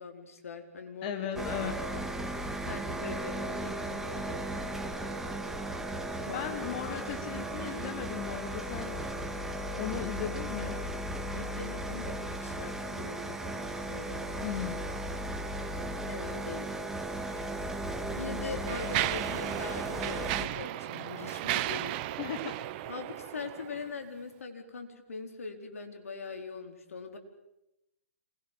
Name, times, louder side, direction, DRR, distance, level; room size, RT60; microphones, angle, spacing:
voice 1, 0.0-4.4 6.2-7.1 11.3-14.8 16.0-16.7 18.2-22.0 22.9-27.2, left 4 dB, 75° left, 5 dB, 4.6 m, -42 dB
voice 2, 1.0-1.7 6.3-9.0 9.7-10.8 14.4-14.8 22.2-22.6, left 9 dB, 40° left, 6 dB, 2.6 m, -36 dB
sound 1, 1.4-20.5, right 1 dB, 5° right, 2.1 m, -36 dB
Mechanisms, 17.3-17.4 18.2-23.9, right 15 dB, 40° right, 1.1 m, -35 dB
27.5 x 21.5 x 7.5 m, 0.88 s
hypercardioid pair, 130°, 8 cm